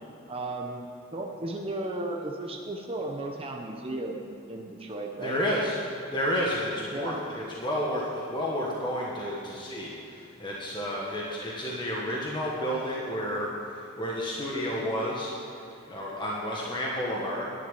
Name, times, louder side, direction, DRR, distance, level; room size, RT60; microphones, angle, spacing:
voice 1, 0.3-0.8 1.1-5.4 6.9-7.2, right 2 dB, 25° right, 1 dB, 0.8 m, -35 dB
voice 2, 5.2-5.8 6.1-15.3 15.9-17.5, equal, 20° left, -4 dB, 1.4 m, -31 dB
10.5 x 7.3 x 9.2 m, 3.0 s
head